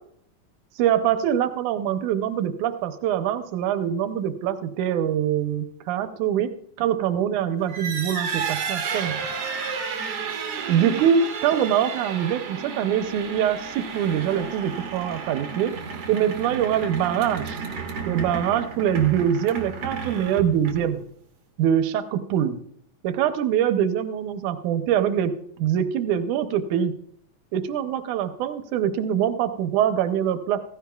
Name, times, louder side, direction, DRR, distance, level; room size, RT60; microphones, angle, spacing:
voice 1, 0.8-6.5 6.8-9.2 10.7-15.7 16.1-17.6 18.1-21.0 21.6-22.6 23.0-26.9 27.5-30.6, right 9 dB, 80° right, 9 dB, 2.2 m, -24 dB
sound 1, 7.6-21.0, right 5 dB, 55° right, 2.2 m, -32 dB
15.5 x 15.5 x 2.3 m, 0.67 s
omnidirectional pair, 3.5 m